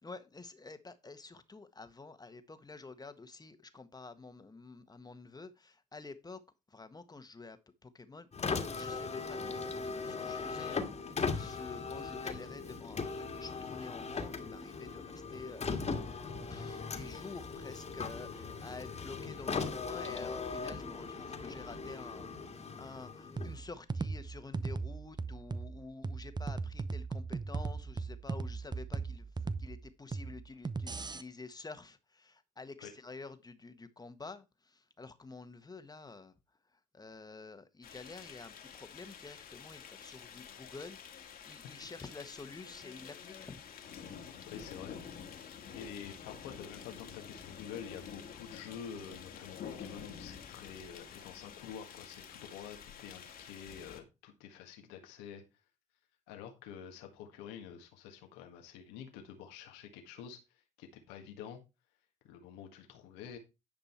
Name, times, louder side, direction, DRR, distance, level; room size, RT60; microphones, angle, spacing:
voice 1, 0.0-6.4 6.7-16.0 16.5-36.3 36.9-43.6, left 3 dB, 25° left, 1.5 m, -49 dB
Car, 8.3-23.7, left 4 dB, 40° left, 1.9 m, -39 dB
sound 1, 23.4-31.2, right 4 dB, 25° right, 0.9 m, -38 dB
sound 2, 37.8-54.0, left 7 dB, 65° left, 1.9 m, -49 dB
voice 2, 44.2-45.3 45.7-55.4 56.3-61.6 62.2-63.4, left 8 dB, 85° left, 1.6 m, -48 dB
10.5 x 5.3 x 4.4 m
supercardioid pair, 60°, 17 cm